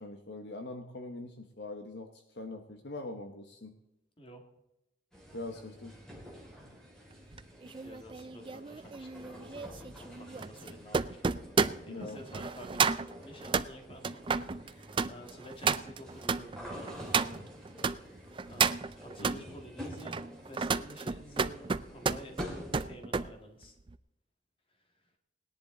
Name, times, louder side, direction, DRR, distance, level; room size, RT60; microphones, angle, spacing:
voice 1, 0.0-3.7 5.3-6.0 11.8-12.2 19.2-19.4, left 2 dB, 60° left, 6 dB, 1.1 m, -43 dB
sound 1, 5.1-22.9, equal, 5° left, 2.7 m, -49 dB
sound 2, 7.3-18.0 18.4-19.4 19.9-23.3 23.6-23.9, right 5 dB, 25° right, 0.4 m, -32 dB
voice 2, 7.8-17.4 18.5-23.7 24.8-25.1, equal, 30° left, 4 dB, 2.1 m, -50 dB
19.0 x 10.5 x 4.0 m, 0.87 s
head